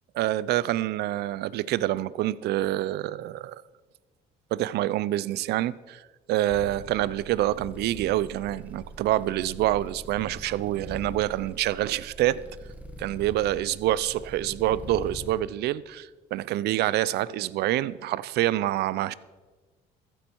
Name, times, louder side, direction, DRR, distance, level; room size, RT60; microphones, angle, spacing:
voice 1, 0.1-3.6 4.5-6.0 6.3-12.4 13.0-19.1, right 14 dB, 75° right, 0.5 m, -27 dB
sound 1, 6.5-15.4, equal, 10° right, 1.5 m, -43 dB
14.0 x 12.0 x 4.6 m
cardioid pair, 110°, 17 cm